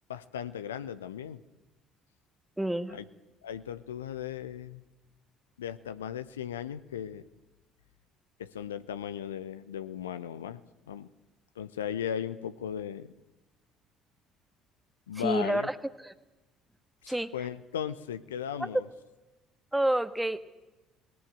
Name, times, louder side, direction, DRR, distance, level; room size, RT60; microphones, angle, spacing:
voice 1, 0.1-1.4 2.9-3.0 3.4-4.8 5.6-7.3 8.4-10.6 10.9-11.1 11.6-13.1 15.1-15.7 17.0-18.9, left 9 dB, 80° left, 13 dB, 0.7 m, -37 dB
voice 2, 2.6-3.0 15.2-15.7 16.0-16.1 17.1-17.3 18.6-18.7 19.7-20.4, right 1 dB, 5° right, 12 dB, 1.3 m, -28 dB
19.0 x 18.5 x 8.8 m, 1.1 s
figure-of-eight pair, 55°, 0 cm